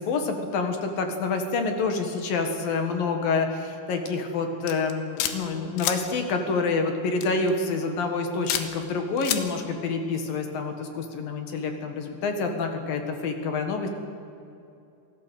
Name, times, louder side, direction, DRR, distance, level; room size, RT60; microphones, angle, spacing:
voice 1, 0.0-13.9, left 4 dB, 60° left, 5 dB, 3.1 m, -27 dB
sound 1, 4.7-5.4 5.8-6.0 7.2-7.5 8.5-8.7 9.2-9.4, left 11 dB, 90° left, 3.8 m, -27 dB
27.0 x 16.5 x 8.3 m, 2.7 s
omnidirectional pair, 5.4 m